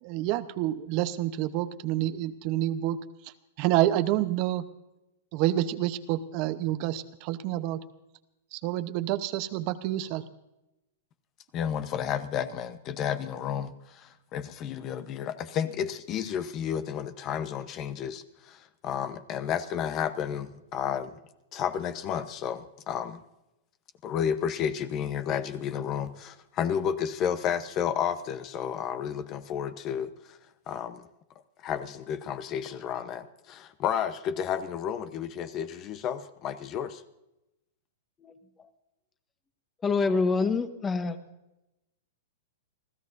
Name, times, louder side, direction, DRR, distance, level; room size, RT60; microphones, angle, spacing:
voice 1, 0.0-4.6 5.3-7.8 8.5-10.2, right 14 dB, 45° right, 11 dB, 0.9 m, -28 dB
voice 2, 11.5-21.1 21.5-23.2 24.0-30.4 30.7-31.0 31.6-37.0, left 8 dB, 35° left, 12 dB, 0.8 m, -32 dB
voice 3, 39.8-41.2, left 4 dB, 15° left, 9 dB, 1.3 m, -26 dB
29.5 x 14.5 x 2.6 m, 0.92 s
hypercardioid pair, 135°, 0 cm